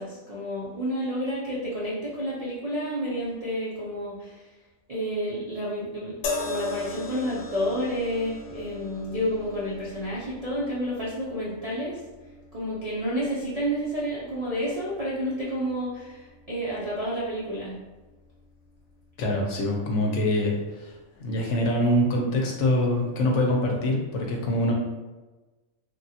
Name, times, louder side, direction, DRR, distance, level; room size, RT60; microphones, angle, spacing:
voice 1, 0.0-4.4 4.9-6.2 6.4-12.0 12.5-17.7, equal, 55° right, -7 dB, 0.4 m, -30 dB
sound 1, 6.2-19.6 20.5-20.7, left 3 dB, 90° left, 1.0 m, -40 dB
voice 2, 19.2-24.7, left 1 dB, 65° left, 0 dB, 0.8 m, -24 dB
3.3 x 2.2 x 2.7 m, 1.2 s
omnidirectional pair, 1.4 m